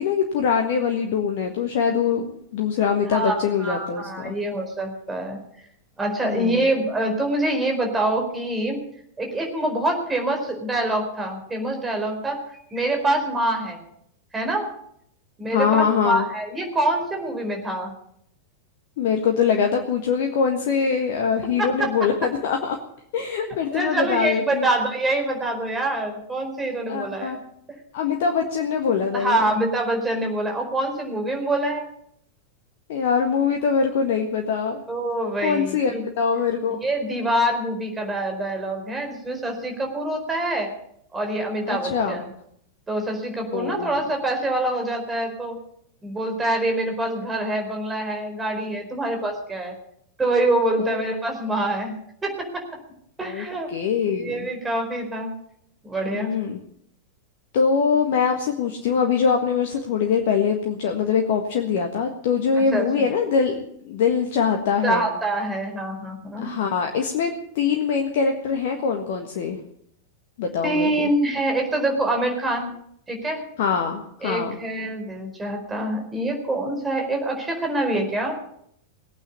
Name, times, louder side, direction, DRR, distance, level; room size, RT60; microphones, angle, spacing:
voice 1, 0.0-4.4 6.2-6.7 15.5-16.2 19.0-22.8 23.1-24.7 26.9-27.4 27.9-29.5 32.9-34.8 35.4-36.8 41.7-42.2 43.5-44.0 50.8-51.0 53.2-53.4 53.7-54.5 56.1-56.6 57.5-65.1 66.4-69.6 70.4-71.1 73.6-74.6, left 6 dB, 55° left, 4 dB, 1.6 m, -23 dB
voice 2, 3.6-5.4 6.0-8.8 9.2-12.4 12.7-13.8 14.3-14.7 15.4-17.9 21.6-21.9 23.5-27.4 29.1-31.9 34.9-36.0 36.8-40.7 41.1-42.2 42.9-45.6 46.0-49.7 50.2-51.9 52.2-52.6 53.2-53.7 54.1-55.4 55.8-56.3 62.5-63.1 64.8-66.5 70.6-72.7 73.1-73.4 74.2-78.4, right 1 dB, 15° right, 3 dB, 4.5 m, -25 dB
18.5 x 9.0 x 8.3 m, 0.70 s
figure-of-eight pair, 90°, 0 cm